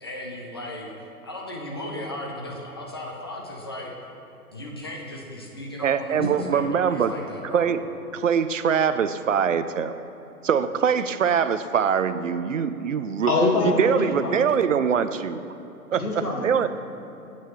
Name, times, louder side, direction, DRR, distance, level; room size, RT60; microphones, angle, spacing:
voice 1, 0.0-0.9 1.2-3.9 4.5-7.7, left 1 dB, 15° left, -1 dB, 0.5 m, -36 dB
voice 2, 5.8-7.1 7.5-7.8 8.1-9.9 10.4-13.3 13.8-15.4 15.9-16.0 16.4-16.7, right 7 dB, 55° right, 12 dB, 0.5 m, -23 dB
voice 3, 13.3-14.4 16.0-16.5, left 2 dB, 70° left, -1 dB, 1.8 m, -24 dB
14.5 x 8.7 x 3.0 m, 2.8 s
figure-of-eight pair, 130°, 46 cm